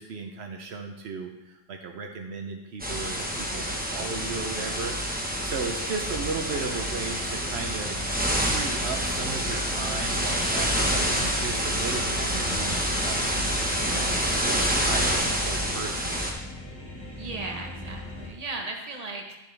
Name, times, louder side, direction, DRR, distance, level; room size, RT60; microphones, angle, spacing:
voice 1, 0.0-8.0 8.4-16.4, right 4 dB, 80° right, 3 dB, 1.0 m, -36 dB
sound 1, 2.8-16.3, equal, 10° right, 1.1 m, -27 dB
sound 2, 5.0-18.3, left 1 dB, 15° left, 1.5 m, -41 dB
voice 2, 17.2-19.4, right 3 dB, 40° right, 1 dB, 1.3 m, -36 dB
11.5 x 7.1 x 3.4 m, 1.0 s
omnidirectional pair, 1.1 m